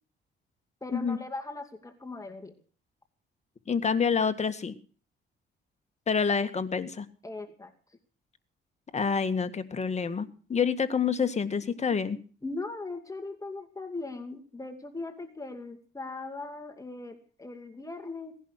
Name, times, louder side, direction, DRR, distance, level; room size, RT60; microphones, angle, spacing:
voice 1, 0.8-2.5 7.2-7.7 12.4-18.4, left 3 dB, 15° left, 5 dB, 2.4 m, -39 dB
voice 2, 3.7-4.7 6.1-7.1 8.9-12.2, left 6 dB, 35° left, 9 dB, 1.9 m, -27 dB
18.0 x 11.0 x 6.6 m, 0.42 s
cardioid pair, 90°, 20 cm